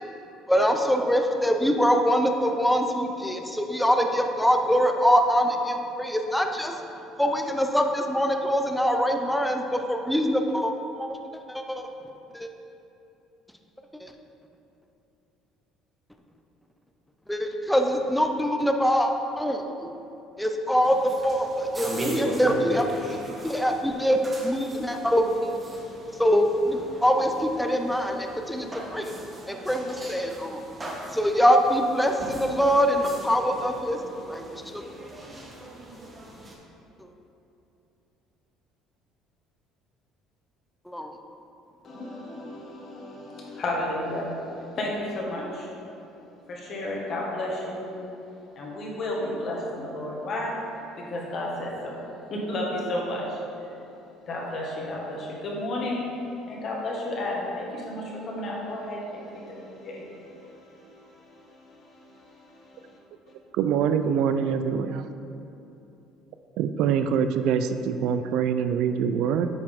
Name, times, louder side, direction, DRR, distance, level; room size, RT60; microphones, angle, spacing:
voice 1, 0.5-6.7 7.2-10.7 11.0-11.1 11.5-11.8 12.3-12.5 14.0-14.1 17.3-19.1 19.4-19.9 20.4-22.8 23.4-25.3 26.2-29.1 29.5-30.6 31.1-34.0 34.3-34.4 34.7-34.8 40.9-41.1, equal, 5° left, 4 dB, 0.5 m, -23 dB
sound 1, 20.8-36.5, right 1 dB, 20° right, 1.2 m, -38 dB
voice 2, 41.8-45.7 46.5-47.9 48.6-50.5 51.1-52.0 52.3-53.8 54.2-63.0, left 1 dB, 50° left, -3 dB, 1.7 m, -33 dB
voice 3, 63.6-65.1 66.6-69.5, right 7 dB, 70° right, 9 dB, 0.4 m, -24 dB
9.3 x 4.8 x 3.7 m, 2.8 s
cardioid pair, 105°, 0 cm